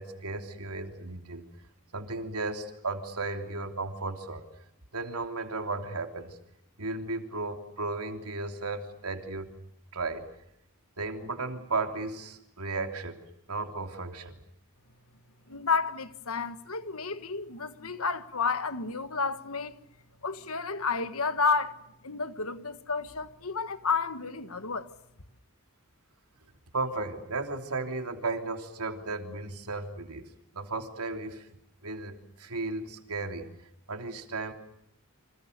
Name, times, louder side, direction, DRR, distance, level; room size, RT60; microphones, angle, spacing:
voice 1, 0.0-1.5 1.9-4.5 4.9-6.4 6.8-9.5 9.9-10.3 11.0-13.2 13.5-14.4 26.7-31.5 31.8-33.5 33.9-34.5, right 3 dB, 90° right, 3.4 m, -35 dB
voice 2, 15.5-19.8 20.2-21.8 22.0-24.9, left 5 dB, 75° left, 1.6 m, -31 dB
30.0 x 26.5 x 6.8 m
head